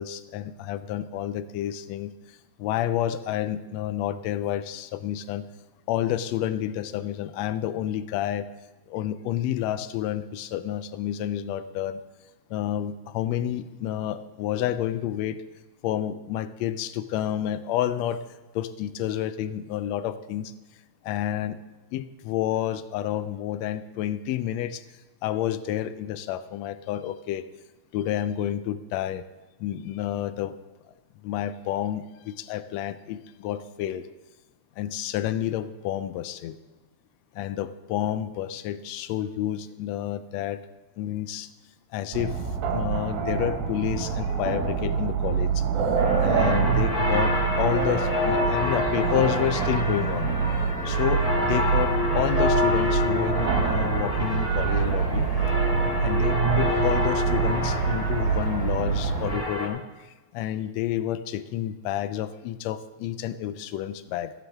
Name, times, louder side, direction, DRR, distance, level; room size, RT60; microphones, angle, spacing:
voice 1, 0.0-5.5 5.9-8.5 8.9-12.0 12.5-15.4 15.8-18.2 18.5-20.5 21.0-21.6 21.9-24.8 25.2-27.5 27.9-29.3 29.6-30.6 31.2-34.1 34.8-36.6 37.3-40.6 41.0-41.5 41.9-42.4 42.7-45.7 46.2-50.3 50.8-55.3 56.0-64.3, left 11 dB, 80° left, 13 dB, 1.6 m, -29 dB
sound 1, 42.1-59.4, right 6 dB, 85° right, 2.8 m, -25 dB
sound 2, 46.0-59.7, left 3 dB, 30° left, 0.6 m, -28 dB
14.5 x 11.5 x 3.5 m, 1.2 s
omnidirectional pair, 3.5 m